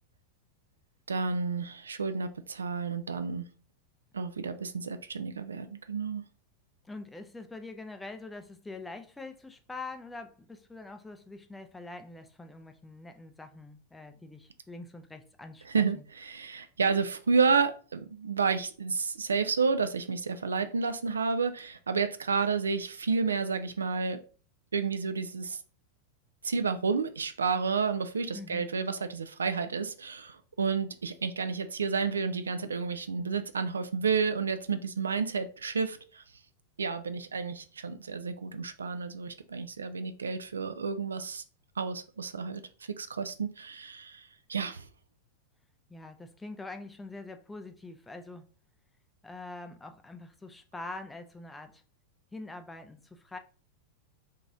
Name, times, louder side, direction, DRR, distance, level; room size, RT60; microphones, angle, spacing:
voice 1, 1.1-3.5 4.1-6.2 15.7-24.2 24.7-25.6 26.4-36.2 36.8-41.4 41.8-42.6 42.9-44.9, right 5 dB, 70° right, 0.3 m, -30 dB
voice 2, 6.8-16.0 28.3-28.7 45.9-48.5 49.2-51.8 52.3-53.4, left 3 dB, 10° left, 0.4 m, -44 dB
2.9 x 2.7 x 3.5 m
figure-of-eight pair, 90°, 0 cm